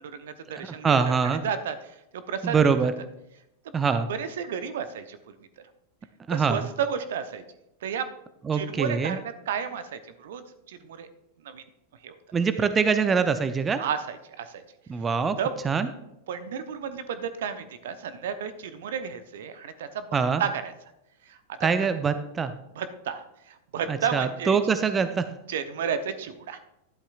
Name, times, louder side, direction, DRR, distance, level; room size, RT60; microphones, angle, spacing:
voice 1, 0.0-1.0 1.2-2.9 4.1-5.4 6.3-7.4 7.8-8.1 8.5-11.1 11.4-11.6 12.0-12.1 13.8-14.6 15.4-15.5 16.3-20.7 21.3-21.9 22.8-24.6 25.5-26.6, right 7 dB, 60° right, 11 dB, 0.7 m, -32 dB
voice 2, 0.6-1.4 2.4-2.9 3.7-4.1 6.3-6.7 8.5-9.2 12.3-13.8 14.9-15.4 15.6-15.9 20.1-20.4 21.6-22.5 23.9-25.2, right 5 dB, 20° right, 10 dB, 0.6 m, -24 dB
13.0 x 11.5 x 2.4 m, 0.85 s
figure-of-eight pair, 90°, 0 cm